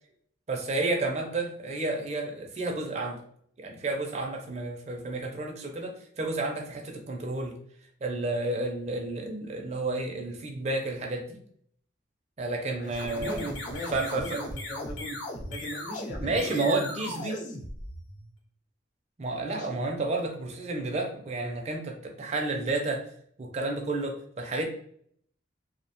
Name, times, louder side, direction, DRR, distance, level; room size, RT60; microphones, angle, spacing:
voice 1, 0.5-3.2 3.6-7.6 8.0-11.4 12.4-13.5 13.9-14.4 16.2-17.4 19.2-23.1 23.4-24.7, right 2 dB, 35° right, 2 dB, 0.4 m, -31 dB
voice 2, 12.6-15.2 15.5-16.8 17.1-17.6 19.4-19.9, equal, 40° left, 0 dB, 0.6 m, -40 dB
sound 1, 12.8-18.3, left 1 dB, 75° left, 0.9 m, -38 dB
2.6 x 2.1 x 2.8 m, 0.63 s
head